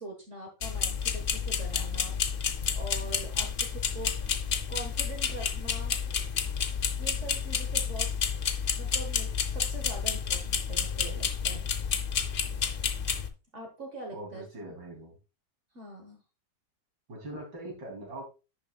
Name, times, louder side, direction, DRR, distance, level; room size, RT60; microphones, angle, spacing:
voice 1, 0.0-2.4 2.7-4.4 4.7-6.0 6.9-8.1 8.8-11.6 13.5-14.7 15.7-16.2, right 2 dB, 45° right, 2 dB, 1.7 m, -43 dB
sound 1, 0.6-13.3, left 6 dB, 65° left, 0.5 m, -30 dB
voice 2, 14.1-15.1 17.1-18.2, right 1 dB, 75° right, 1 dB, 3.5 m, -41 dB
10.5 x 6.1 x 2.3 m, 0.30 s
omnidirectional pair, 1.9 m